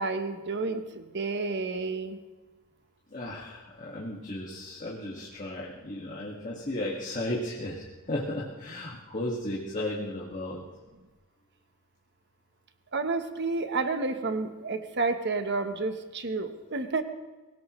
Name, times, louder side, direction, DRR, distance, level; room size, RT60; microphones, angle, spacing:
voice 1, 0.0-2.2 12.9-17.0, right 3 dB, 50° right, 8 dB, 1.2 m, -30 dB
voice 2, 3.1-10.6, left 1 dB, 35° left, -4 dB, 2.0 m, -35 dB
23.5 x 18.0 x 3.2 m, 1.2 s
head